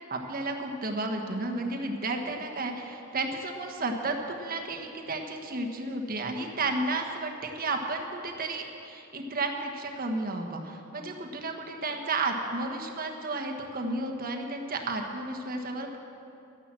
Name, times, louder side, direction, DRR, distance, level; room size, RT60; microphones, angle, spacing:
voice 1, 0.1-16.0, right 2 dB, 45° right, 2 dB, 1.3 m, -32 dB
12.0 x 10.5 x 7.5 m, 2.8 s
head